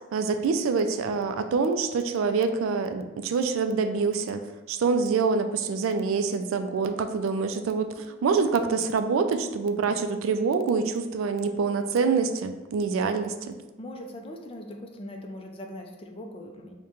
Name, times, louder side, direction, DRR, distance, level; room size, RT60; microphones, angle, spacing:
voice 1, 0.1-4.4 4.7-13.5, right 5 dB, 85° right, 8 dB, 0.3 m, -26 dB
voice 2, 13.8-16.7, left 1 dB, 30° left, 3 dB, 0.4 m, -40 dB
4.9 x 2.1 x 2.9 m, 1.1 s
head